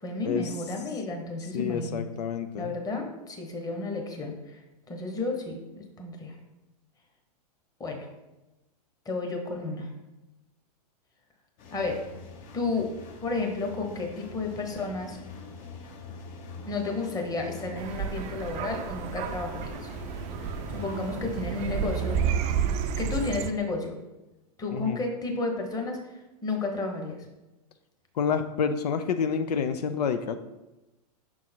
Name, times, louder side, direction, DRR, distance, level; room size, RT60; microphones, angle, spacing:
voice 1, 0.0-2.1 2.6-4.6 4.9-6.3 7.8-8.1 9.0-9.9 11.7-12.1 12.5-12.9 13.2-15.2 16.7-19.9 20.7-22.2 23.0-24.0 24.6-27.3, left 3 dB, 20° left, 3 dB, 1.2 m, -32 dB
voice 2, 1.5-2.7 24.7-25.0 28.2-30.4, left 6 dB, 80° left, 9 dB, 0.5 m, -28 dB
sound 1, 11.6-22.5, left 4 dB, 40° left, 1.0 m, -43 dB
sound 2, 17.8-23.5, right 8 dB, 35° right, 0.5 m, -31 dB
6.0 x 3.8 x 4.5 m, 1.0 s
hypercardioid pair, 110°, 20 cm